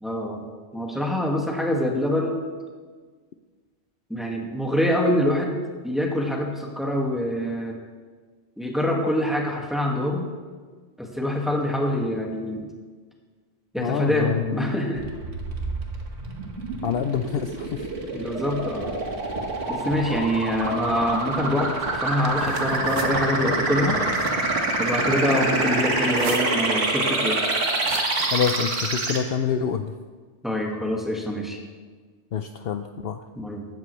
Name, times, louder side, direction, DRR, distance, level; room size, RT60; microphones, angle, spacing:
voice 1, 0.0-0.4 0.7-2.4 4.1-7.8 8.6-10.3 11.0-12.7 13.7-15.0 18.1-18.9 19.7-24.0 24.8-27.4 30.4-31.6 33.4-33.7, left 1 dB, ahead, -1 dB, 1.8 m, -25 dB
voice 2, 13.8-14.7 16.8-17.9 28.3-29.9 32.3-33.2, left 7 dB, 60° left, 7 dB, 0.7 m, -26 dB
sound 1, 15.0-29.2, right 2 dB, 90° right, 1.9 m, -26 dB
sound 2, 22.1-23.1 23.9-24.4 26.0-26.7 27.7-29.1, right 5 dB, 70° right, 1.2 m, -38 dB
15.5 x 13.0 x 3.2 m, 1.5 s
omnidirectional pair, 1.2 m